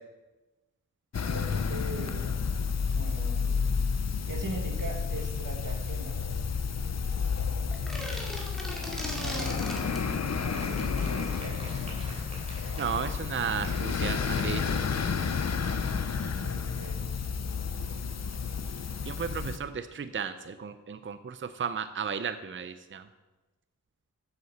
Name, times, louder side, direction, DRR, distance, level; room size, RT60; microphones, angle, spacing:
sound 1, 1.1-19.6, left 5 dB, 55° left, 0.6 m, -31 dB
voice 1, 1.3-2.3 3.0-3.6 4.3-6.2 9.1-11.7 16.2-17.1, right 2 dB, 85° right, 2 dB, 1.8 m, -41 dB
sound 2, 7.7-10.1, equal, ahead, 2.3 m, -37 dB
sound 3, 10.5-16.9, right 1 dB, 20° right, 3.5 m, -48 dB
voice 2, 12.8-14.6 19.1-23.1, right 7 dB, 40° right, 11 dB, 0.5 m, -34 dB
8.1 x 7.9 x 6.6 m, 1.1 s
wide cardioid pair, 85°, 32 cm